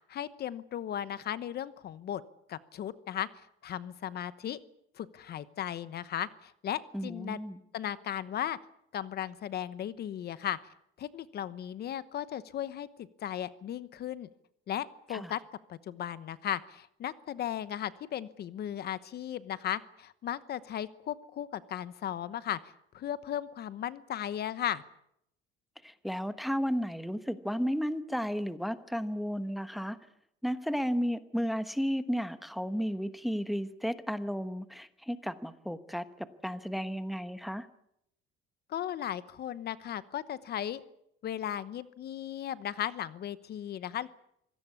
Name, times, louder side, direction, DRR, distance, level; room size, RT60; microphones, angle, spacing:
voice 1, 0.1-2.2 2.5-3.3 3.6-4.6 5.0-7.4 7.7-8.6 8.9-10.6 11.0-14.3 14.7-15.4 15.7-22.6 22.9-24.8 38.7-40.8 41.2-44.1, left 10 dB, 50° left, 16 dB, 1.0 m, -36 dB
voice 2, 6.9-7.6 15.1-15.3 25.8-30.0 30.4-37.7, equal, ahead, 12 dB, 1.1 m, -33 dB
25.0 x 17.5 x 8.4 m, 0.76 s
cardioid pair, 135°, 21 cm